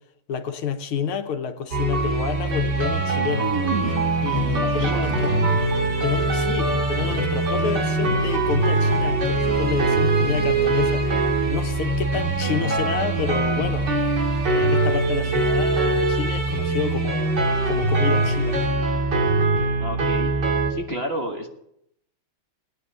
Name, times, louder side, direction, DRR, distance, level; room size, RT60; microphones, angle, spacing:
voice 1, 0.3-3.5 4.2-5.3 6.0-11.1 11.5-13.9 14.5-17.3 17.7-18.6, left 7 dB, 85° left, 2.0 m, -29 dB
sound 1, 1.7-20.7, right 2 dB, 55° right, 2.9 m, -22 dB
sound 2, 3.4-17.0, right 2 dB, 10° right, 1.7 m, -39 dB
Guitar, 3.8-11.3, left 3 dB, 25° left, 2.4 m, -35 dB
voice 2, 4.5-5.1 19.8-20.3 20.7-21.5, equal, 30° right, 1.7 m, -31 dB
18.5 x 9.8 x 6.8 m
omnidirectional pair, 2.3 m